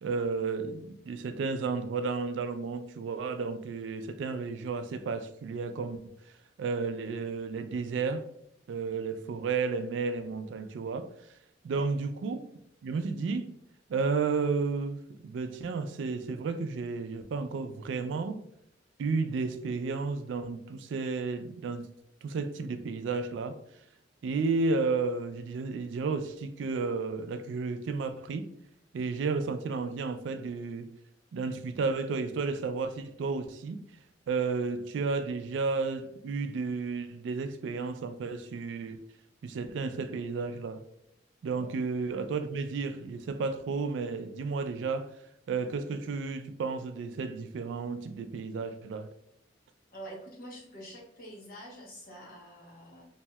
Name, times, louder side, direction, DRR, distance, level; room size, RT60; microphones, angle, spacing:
voice 1, 0.0-6.0 6.6-8.3 8.7-11.1 11.6-12.4 12.8-13.5 13.9-18.4 19.0-21.9 22.2-23.6 24.2-28.5 28.9-30.9 31.3-33.8 34.3-39.0 39.4-40.8 41.4-45.2 45.5-49.1, right 4 dB, 75° right, 0.3 m, -32 dB
voice 2, 49.9-53.1, right 1 dB, 50° left, 1.0 m, -46 dB
3.1 x 2.6 x 2.2 m
head